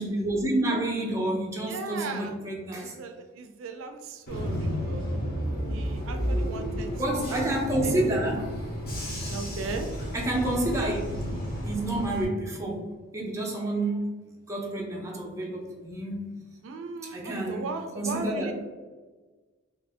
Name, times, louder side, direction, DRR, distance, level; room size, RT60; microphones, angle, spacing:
voice 1, 0.0-2.9 7.0-8.5 10.1-11.0 11.7-14.0 14.5-16.1 17.0-17.7 17.9-18.5, right 1 dB, 15° right, -2 dB, 0.5 m, -29 dB
voice 2, 1.7-2.3 2.8-5.1 5.7-6.9 7.3-7.4 7.8-7.9 9.3-9.9 16.6-18.5, right 4 dB, 75° right, 6 dB, 0.3 m, -37 dB
Bus / Engine, 4.3-12.2, equal, 45° left, 0.9 m, -32 dB
2.8 x 2.5 x 3.4 m, 1.3 s
head